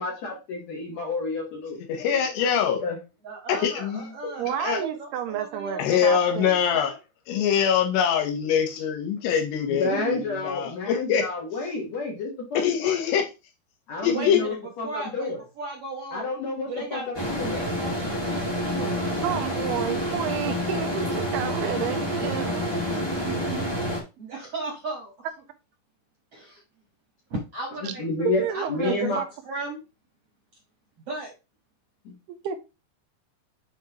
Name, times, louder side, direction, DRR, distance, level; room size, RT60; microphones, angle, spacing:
voice 1, 0.0-1.8 2.1-2.2 2.8-3.0 9.7-13.0 13.9-15.4 16.1-17.7 27.8-28.4 28.7-29.2 32.1-32.2, left 3 dB, 55° left, 2.3 m, -30 dB
voice 2, 1.9-2.8 3.5-4.1 4.6-4.8 5.8-6.9 7.3-11.3 12.5-13.3 14.0-14.4, left 8 dB, 85° left, 3.3 m, -24 dB
voice 3, 3.2-7.0 9.9-10.2 14.1-14.6 14.8-16.3 16.7-19.6 23.2-23.6 24.2-25.1 26.3-26.6 27.5-28.0 28.5-29.8 31.1-31.3, right 3 dB, 50° right, 1.8 m, -36 dB
voice 4, 4.4-6.5 19.2-22.9 27.9-28.0 28.2-29.2 32.3-32.6, right 10 dB, 85° right, 2.6 m, -30 dB
sound 1, 17.1-24.0, equal, 20° left, 0.6 m, -28 dB
7.9 x 4.6 x 3.0 m
omnidirectional pair, 4.7 m